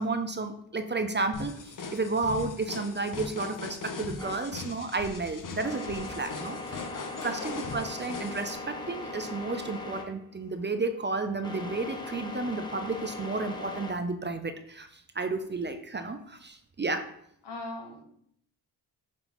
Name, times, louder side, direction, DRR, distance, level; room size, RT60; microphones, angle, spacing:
voice 1, 0.0-6.9 7.2-17.1, right 3 dB, 25° right, 8 dB, 0.5 m, -32 dB
sound 1, 1.3-8.5, left 4 dB, 50° left, 0.7 m, -40 dB
sound 2, 4.2-13.9, left 3 dB, 10° left, 1.0 m, -40 dB
voice 2, 7.1-7.6 17.4-18.0, left 2 dB, 80° left, 2 dB, 1.4 m, -40 dB
5.9 x 5.3 x 3.0 m, 0.69 s
wide cardioid pair, 95°, 41 cm